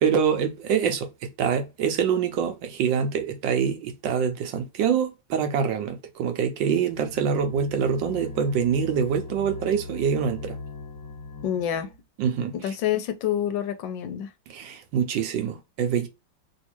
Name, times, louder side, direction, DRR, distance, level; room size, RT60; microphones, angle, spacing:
voice 1, 0.0-10.6 12.2-12.5 14.5-16.1, right 7 dB, 70° right, 1.3 m, -25 dB
sound 1, 6.9-12.0, left 3 dB, 20° left, 0.9 m, -39 dB
voice 2, 11.4-11.9 12.5-14.3, left 10 dB, 75° left, 1.2 m, -27 dB
3.5 x 2.7 x 2.9 m
omnidirectional pair, 2.2 m